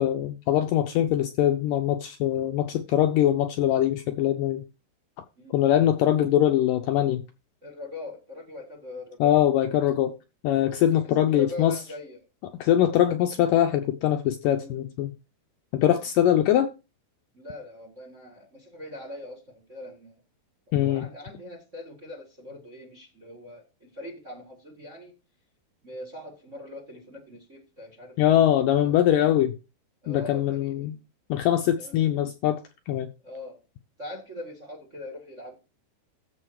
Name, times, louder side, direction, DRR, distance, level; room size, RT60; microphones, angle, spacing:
voice 1, 0.0-4.6 5.5-7.2 9.2-10.1 10.4-11.7 12.6-15.1 15.7-16.7 20.7-21.1 28.2-29.5 30.1-31.0 31.3-32.6 32.9-33.1, left 11 dB, 75° left, 2.0 m, -22 dB
voice 2, 5.4-5.7 7.6-9.4 10.9-12.3 14.6-14.9 17.3-20.1 20.8-25.1 25.8-29.2 30.0-31.0 31.8-32.1 33.2-33.6 34.0-35.5, left 1 dB, 30° right, 1.3 m, -42 dB
14.0 x 5.2 x 4.8 m
omnidirectional pair, 4.5 m